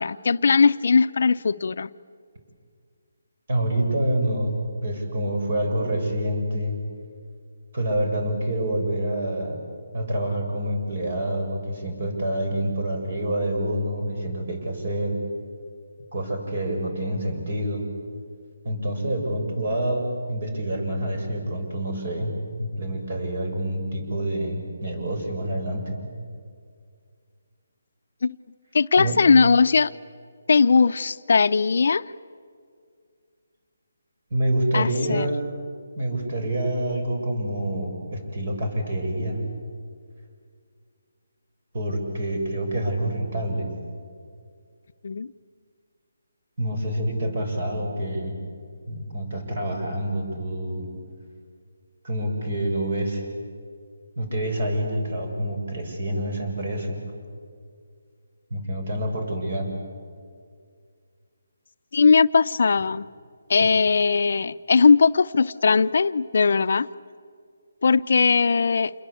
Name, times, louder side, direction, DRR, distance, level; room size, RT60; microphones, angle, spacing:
voice 1, 0.0-1.9 28.2-28.4 28.7-29.9 30.5-32.1 34.7-35.3 45.0-45.3 61.9-63.1 63.5-66.9 67.8-68.9, left 5 dB, 60° left, 13 dB, 0.6 m, -19 dB
voice 2, 3.5-4.5 4.8-6.8 7.7-9.6 9.9-15.2 16.1-17.8 18.6-22.3 22.6-26.0 29.0-29.2 34.3-35.4 36.0-39.4 41.7-43.7 46.6-48.4 48.9-50.9 52.0-53.2 54.2-57.0 58.5-59.7, right 1 dB, 50° right, 4 dB, 7.2 m, -27 dB
28.0 x 22.0 x 8.5 m, 2.1 s
hypercardioid pair, 165°, 0 cm